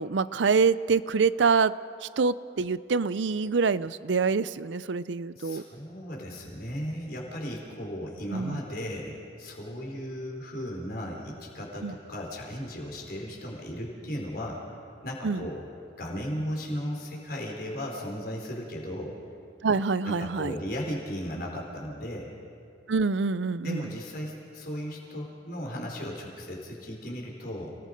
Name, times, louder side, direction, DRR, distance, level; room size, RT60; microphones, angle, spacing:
voice 1, 0.0-1.7 2.0-5.6 8.3-8.6 11.8-11.9 15.2-15.5 19.6-20.6 22.9-24.0, right 5 dB, 80° right, 17 dB, 0.5 m, -26 dB
voice 2, 5.4-14.6 15.0-15.6 16.0-19.1 20.0-22.3 23.6-27.8, equal, 55° left, -1 dB, 4.4 m, -36 dB
29.5 x 19.0 x 5.2 m, 2.5 s
head